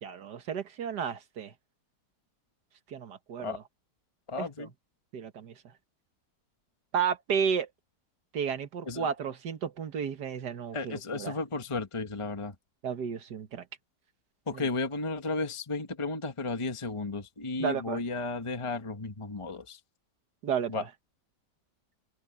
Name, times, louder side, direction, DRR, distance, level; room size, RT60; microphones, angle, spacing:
voice 1, 0.0-1.5 2.9-3.6 4.4-4.7 5.1-5.5 6.9-7.7 8.3-11.4 12.8-13.6 14.5-14.7 17.6-18.0 20.4-20.9, right 7 dB, 75° right, 1.9 m, -32 dB
voice 2, 4.3-4.7 8.9-9.1 10.7-12.5 14.5-19.8 20.7-20.8, left 3 dB, 20° left, 1.3 m, -33 dB
open air
omnidirectional pair, 1.8 m